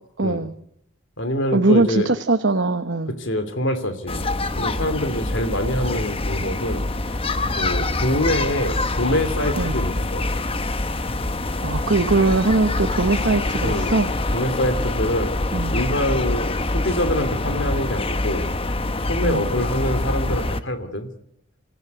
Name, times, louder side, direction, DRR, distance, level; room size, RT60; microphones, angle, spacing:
voice 1, 0.2-0.5 1.5-3.1 9.6-9.8 11.6-14.1 15.5-15.8 19.2-19.4, right 3 dB, 60° right, 7 dB, 1.0 m, -21 dB
voice 2, 1.2-2.1 3.2-4.2 4.6-6.9 7.5-10.3 13.6-14.0 14.3-15.3 15.7-18.5 19.0-21.1, left 1 dB, 65° left, 8 dB, 2.8 m, -25 dB
sound 1, 4.1-20.6, left 2 dB, 25° left, 0.9 m, -25 dB
25.5 x 15.0 x 9.6 m, 0.72 s
head